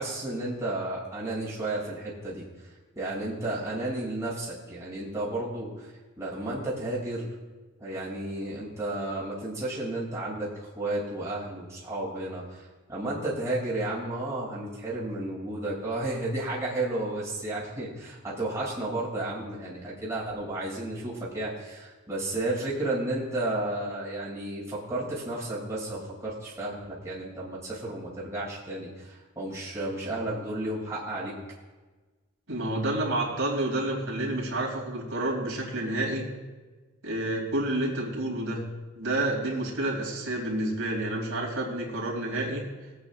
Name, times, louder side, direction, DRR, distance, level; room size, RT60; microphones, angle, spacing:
voice 1, 0.0-2.4 3.0-5.9 6.2-7.3 7.8-10.5 10.7-31.4, right 2 dB, 15° right, -7 dB, 2.7 m, -32 dB
voice 2, 32.5-36.3 37.0-38.7 39.0-42.7, right 1 dB, 90° right, -3 dB, 2.8 m, -29 dB
20.5 x 8.3 x 2.5 m, 1.3 s
head